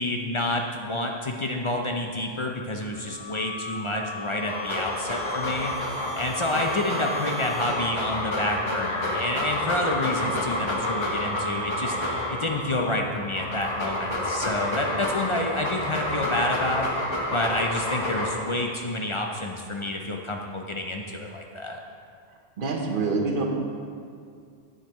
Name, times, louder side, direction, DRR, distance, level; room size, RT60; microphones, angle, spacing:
voice 1, 0.0-5.7 6.2-12.0 12.3-16.9 17.3-21.8, left 1 dB, 45° left, 1 dB, 0.4 m, -29 dB
sound 1, 2.9-13.3, left 1 dB, 70° left, 1.3 m, -37 dB
Dog, 4.4-12.6 13.2-18.6, left 1 dB, 25° left, 1.1 m, -29 dB
sound 2, 7.8-16.8, right 1 dB, 40° right, 1.7 m, -45 dB
voice 2, 22.6-23.4, right 3 dB, 55° right, 2 dB, 1.0 m, -26 dB
9.5 x 7.3 x 3.0 m, 2.2 s
omnidirectional pair, 1.1 m